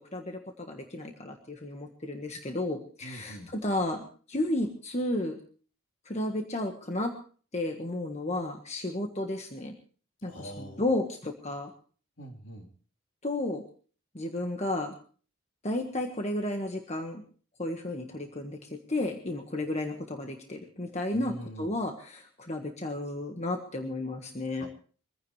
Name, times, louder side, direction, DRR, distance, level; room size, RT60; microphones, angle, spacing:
voice 1, 0.0-5.4 6.0-7.1 7.5-9.7 10.2-11.7 13.2-13.6 14.1-15.0 15.6-17.2 17.6-24.7, left 1 dB, 35° left, 3 dB, 1.5 m, -33 dB
voice 2, 3.0-3.5 10.3-10.8 12.2-12.7 21.1-21.8 24.6-24.7, right 1 dB, 65° left, 1 dB, 3.7 m, -43 dB
24.0 x 15.5 x 3.2 m, 0.42 s
head